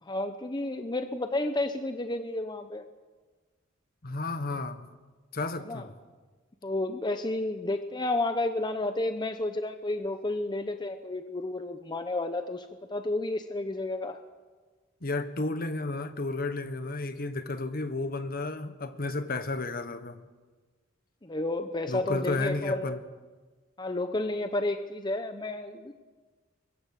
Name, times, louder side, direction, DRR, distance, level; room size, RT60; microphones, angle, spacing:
voice 1, 0.0-2.8 5.6-5.9 6.6-14.2 21.2-23.0 23.8-25.9, left 2 dB, 20° left, 7 dB, 0.9 m, -31 dB
voice 2, 4.0-4.8 5.3-5.9 15.0-20.2 21.9-23.0, left 2 dB, 50° left, 10 dB, 1.4 m, -32 dB
25.0 x 22.5 x 6.6 m, 1.3 s
head